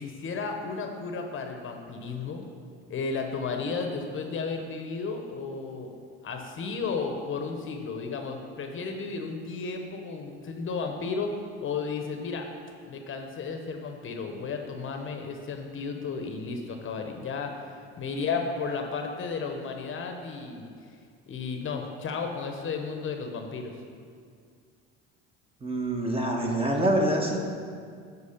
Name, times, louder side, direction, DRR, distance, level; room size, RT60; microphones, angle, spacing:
voice 1, 0.0-2.5 2.9-5.9 6.2-12.5 12.9-20.7 21.3-23.8, left 4 dB, 40° left, 4 dB, 1.0 m, -33 dB
voice 2, 25.6-27.4, right 1 dB, 20° right, 0 dB, 1.4 m, -25 dB
8.4 x 4.6 x 6.7 m, 2.2 s
supercardioid pair, 85°, 31 cm